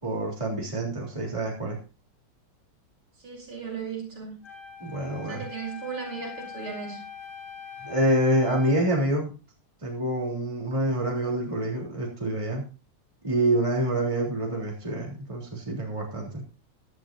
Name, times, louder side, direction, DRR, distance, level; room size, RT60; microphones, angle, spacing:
voice 1, 0.0-1.8 4.8-5.4 7.8-9.3 9.8-12.6 13.2-16.4, right 1 dB, 15° right, -2 dB, 3.4 m, -27 dB
voice 2, 3.2-4.3 5.2-7.0, right 6 dB, 65° right, 0 dB, 5.3 m, -36 dB
Wind instrument woodwind instrument, 4.4-8.9, left 7 dB, 25° left, 4.8 m, -42 dB
16.5 x 10.5 x 2.7 m, 0.33 s
omnidirectional pair, 2.4 m